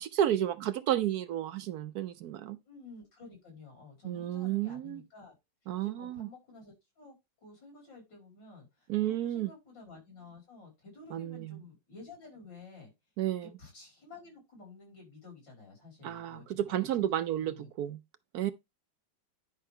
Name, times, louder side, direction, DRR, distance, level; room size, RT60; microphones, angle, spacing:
voice 1, 0.0-2.6 4.0-5.0 5.7-6.3 8.9-9.5 11.1-11.6 13.2-13.5 16.0-18.0 18.3-18.5, right 11 dB, 70° right, 1.0 m, -32 dB
voice 2, 2.6-5.3 5.6-7.2 7.4-12.9 13.6-17.1 17.4-17.9, left 3 dB, 90° left, 5.9 m, -52 dB
10.5 x 5.5 x 3.6 m
omnidirectional pair, 1.9 m